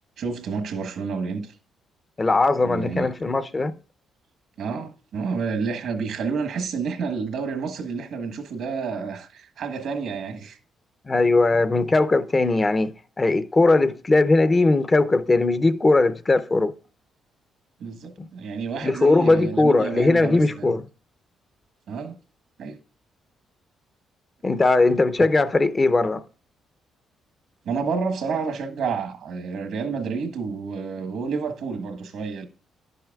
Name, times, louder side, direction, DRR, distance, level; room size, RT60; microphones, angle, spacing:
voice 1, 0.2-1.5 2.6-3.1 4.6-10.6 17.8-20.8 21.9-22.2 22.6-22.8 25.2-25.3 27.6-32.5, right 5 dB, 75° right, 1.3 m, -29 dB
voice 2, 2.2-3.7 11.1-16.7 18.2-18.3 18.8-20.9 24.4-26.2, left 2 dB, 25° left, 0.6 m, -19 dB
10.5 x 7.8 x 2.3 m
cardioid pair, 90°, 0 cm